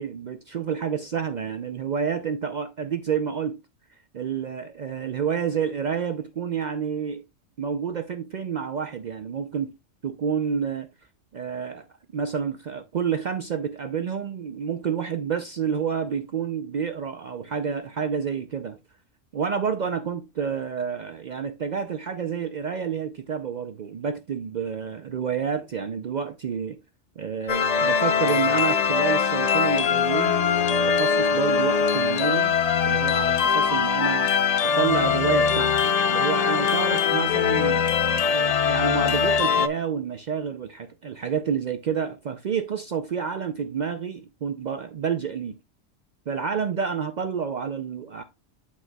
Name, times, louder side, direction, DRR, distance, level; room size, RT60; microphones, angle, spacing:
voice 1, 0.0-3.6 4.1-7.2 7.6-9.7 10.0-10.9 11.3-11.8 12.1-18.8 19.3-26.8 27.2-34.3 34.6-37.8 38.3-45.6 46.3-48.2, right 7 dB, 75° right, 0.4 m, -29 dB
sound 1, 27.5-39.7, left 6 dB, 80° left, 0.3 m, -22 dB
11.5 x 5.3 x 2.2 m
omnidirectional pair, 1.3 m